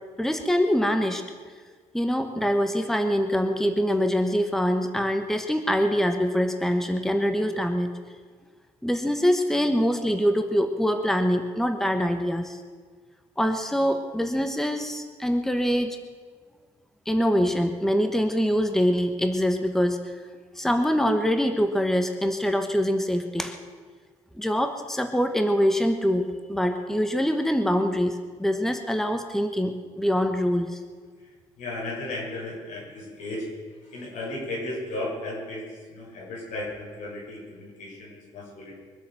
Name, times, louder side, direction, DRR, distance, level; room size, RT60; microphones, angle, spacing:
voice 1, 0.2-1.2 1.9-7.9 8.8-12.6 13.4-16.0 17.1-20.0 20.6-23.6 24.4-26.2 26.5-30.8, equal, 5° left, 7 dB, 1.2 m, -24 dB
voice 2, 31.2-33.5 33.8-38.7, left 2 dB, 85° left, -3 dB, 6.9 m, -35 dB
23.0 x 8.2 x 7.7 m, 1.6 s
cardioid pair, 110°, 13 cm